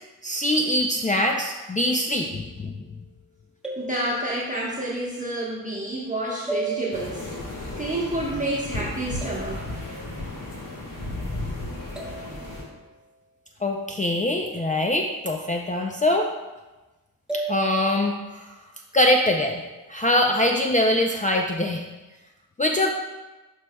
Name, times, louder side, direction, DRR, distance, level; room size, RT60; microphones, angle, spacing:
voice 1, 0.2-2.7 13.6-16.3 17.3-18.5 18.9-19.6 19.9-21.9 22.6-22.9, left 1 dB, 20° left, 2 dB, 0.4 m, -23 dB
sound 1, 2.3-2.7 3.6-5.0 6.5-7.5 9.2-10.3 12.0-13.0 14.6-15.5 17.3-18.3, right 3 dB, ahead, 1.3 m, -36 dB
voice 2, 3.8-7.3 7.8-9.6, right 1 dB, 20° right, -6 dB, 1.2 m, -29 dB
sound 2, 6.9-12.6, left 2 dB, 60° left, 2.3 m, -34 dB
11.0 x 4.8 x 2.3 m, 1.1 s
cardioid pair, 80°, 37 cm